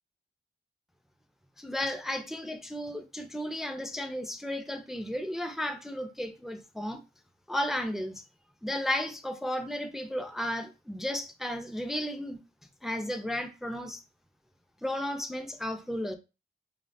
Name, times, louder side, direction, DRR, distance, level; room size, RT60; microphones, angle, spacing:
voice 1, 1.6-7.0 7.5-8.2 8.6-12.4 12.8-14.0 14.8-16.2, left 1 dB, ahead, 0.3 m, -34 dB
3.3 x 2.0 x 2.6 m
wide cardioid pair, 100°, 18 cm